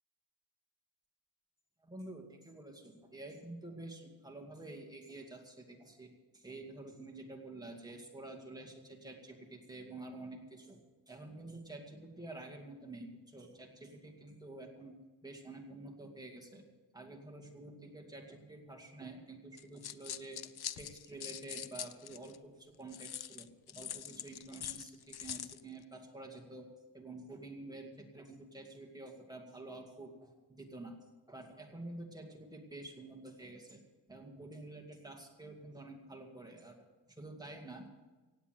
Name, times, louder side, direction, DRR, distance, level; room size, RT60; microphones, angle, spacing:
voice 1, 1.8-10.8 11.1-16.6 16.9-26.7 26.9-31.0 31.3-33.8 34.1-37.9, right 2 dB, 10° right, 1 dB, 2.2 m, -49 dB
sound 1, 19.6-22.4 22.9-25.6, left 10 dB, 60° left, 0.6 m, -44 dB
17.0 x 8.6 x 7.7 m, 1.2 s
wide cardioid pair, 135°, 44 cm